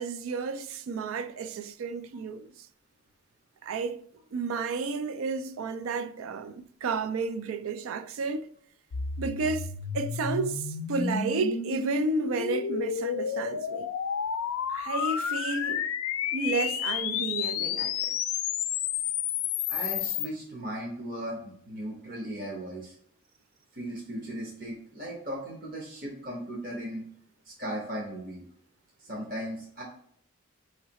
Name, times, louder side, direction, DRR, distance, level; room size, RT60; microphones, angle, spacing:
voice 1, 0.0-2.5 3.6-4.0 4.3-8.5 9.2-13.9 14.7-15.9 16.3-18.2, right 4 dB, 75° right, 0.3 m, -32 dB
sound 1, 8.9-20.3, left 8 dB, 85° left, 0.4 m, -31 dB
voice 2, 19.7-23.0 23.7-27.0 27.4-28.4 29.0-29.8, right 1 dB, 40° right, 0.9 m, -37 dB
4.6 x 3.2 x 2.8 m
head